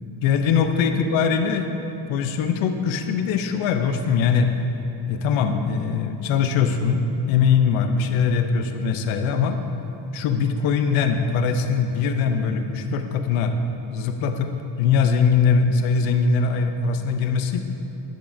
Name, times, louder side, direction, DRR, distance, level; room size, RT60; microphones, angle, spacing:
voice 1, 0.2-1.7 2.1-4.5 5.1-9.6 10.1-13.5 13.9-14.5 14.8-17.6, left 6 dB, 80° left, 7 dB, 0.7 m, -21 dB
10.5 x 7.1 x 2.6 m, 2.9 s
cardioid pair, 175°, 46 cm